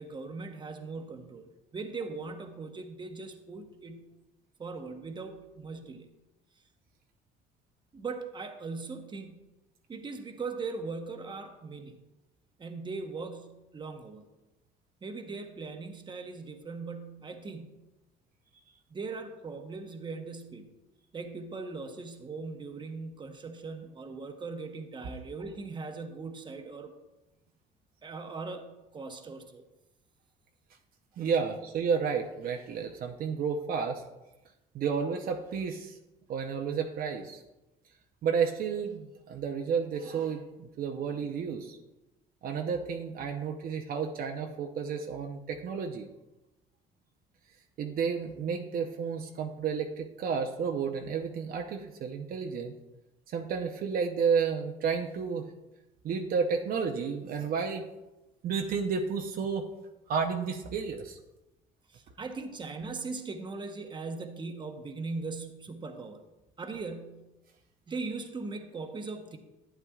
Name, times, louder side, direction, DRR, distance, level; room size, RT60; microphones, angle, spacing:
voice 1, 0.0-4.1 4.6-6.1 7.9-9.5 9.9-12.0 12.6-14.3 15.0-17.8 18.9-20.7 21.1-26.9 28.0-29.6 61.9-66.2 66.6-67.3 67.9-69.4, right 4 dB, 25° right, 5 dB, 1.0 m, -39 dB
voice 2, 31.2-34.0 34.7-36.0 36.3-37.4 38.2-41.8 42.4-46.1 47.8-52.7 53.3-55.5 56.0-57.8 58.4-59.7 60.1-61.2, right 6 dB, 60° right, 4 dB, 0.7 m, -31 dB
11.0 x 8.8 x 2.4 m, 1.0 s
cardioid pair, 110°, 17 cm